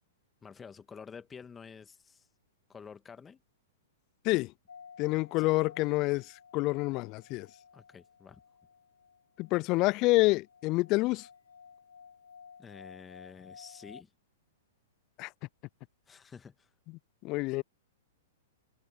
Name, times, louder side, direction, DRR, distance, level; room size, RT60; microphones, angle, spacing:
voice 1, 0.4-2.3 2.7-3.4 5.4-5.5 7.7-8.4 12.6-14.1 16.1-16.7, left 6 dB, 15° left, 1.6 m, -49 dB
sound 1, 4.7-14.0, left 6 dB, 85° left, 2.0 m, -54 dB
voice 2, 5.0-6.3 6.5-7.5 9.4-11.3 15.2-15.3 17.2-17.6, left 22 dB, 40° left, 0.3 m, -27 dB
hypercardioid pair, 115°, 0 cm